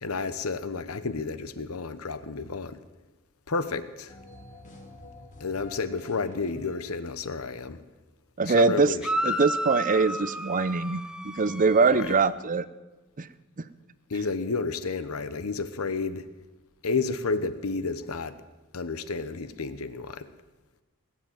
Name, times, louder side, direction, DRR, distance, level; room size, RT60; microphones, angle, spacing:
voice 1, 0.0-2.8 3.5-4.1 5.4-7.8 8.4-9.1 11.9-12.2 14.1-16.3 16.8-18.4 18.7-20.3, left 4 dB, 70° left, 13 dB, 1.0 m, -31 dB
sound 1, 4.1-7.4, left 1 dB, 35° left, 2.6 m, -49 dB
voice 2, 8.4-9.0 9.2-12.7 13.2-13.3, right 4 dB, 40° right, 16 dB, 0.6 m, -23 dB
sound 2, 9.0-12.3, equal, 5° right, 0.7 m, -32 dB
19.0 x 7.6 x 9.3 m, 1.1 s
head